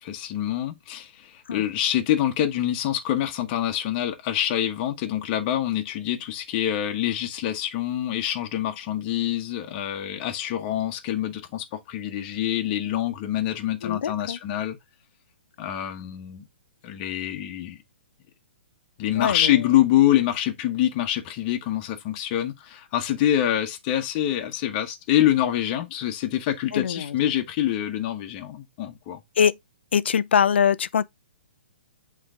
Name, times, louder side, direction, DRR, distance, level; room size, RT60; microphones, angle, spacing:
voice 1, 0.0-14.8 15.6-16.5 16.8-17.8 19.0-29.2, left 12 dB, 35° left, 1.2 m, -25 dB
voice 2, 13.8-14.4 19.1-19.6 26.7-27.2 29.4-29.6 29.9-31.0, left 7 dB, 70° left, 0.5 m, -23 dB
7.8 x 3.3 x 3.7 m
hypercardioid pair, 135°, 6 cm